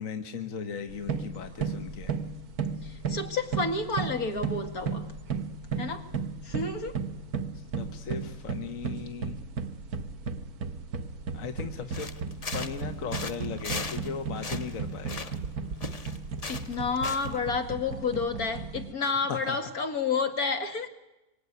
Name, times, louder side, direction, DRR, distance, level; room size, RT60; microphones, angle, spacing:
voice 1, 0.0-2.2 7.5-9.4 11.3-12.1 12.5-15.4 19.0-19.6, left 6 dB, 65° left, 1.7 m, -37 dB
sound 1, 0.9-18.9, right 5 dB, 90° right, 1.7 m, -35 dB
voice 2, 2.8-5.1 5.8-6.1 6.4-7.0 16.5-20.9, left 4 dB, 80° left, 2.6 m, -30 dB
sound 2, 11.9-12.9 13.1-14.1 14.3-15.5 15.8-17.4, left 4 dB, 30° left, 1.1 m, -38 dB
24.5 x 24.5 x 9.5 m
omnidirectional pair, 1.5 m